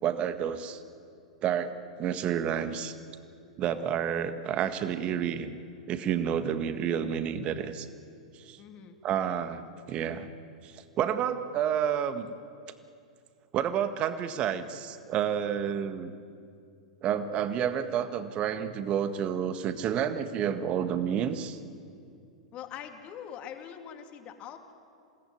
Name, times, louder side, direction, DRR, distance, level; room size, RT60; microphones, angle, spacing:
voice 1, 0.0-0.8 1.4-2.9 3.6-5.6 5.9-7.9 8.4-8.6 9.0-9.6 9.9-10.3 10.6-12.3 13.5-16.1 17.0-21.6, right 9 dB, 35° right, 10 dB, 1.7 m, -30 dB
voice 2, 8.6-9.0 22.5-24.7, left 9 dB, 35° left, 5 dB, 2.6 m, -43 dB
28.0 x 18.5 x 9.4 m, 2.5 s
figure-of-eight pair, 95°, 3 cm